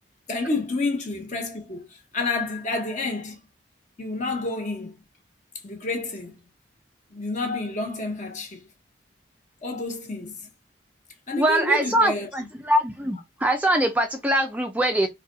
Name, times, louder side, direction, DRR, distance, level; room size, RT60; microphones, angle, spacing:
voice 1, 0.3-3.4 4.0-5.0 5.6-6.4 7.1-8.7 9.6-10.5 11.3-12.3, left 3 dB, 40° left, 1.0 m, -29 dB
voice 2, 11.4-15.1, right 1 dB, 10° right, 0.4 m, -23 dB
4.0 x 2.3 x 3.8 m
head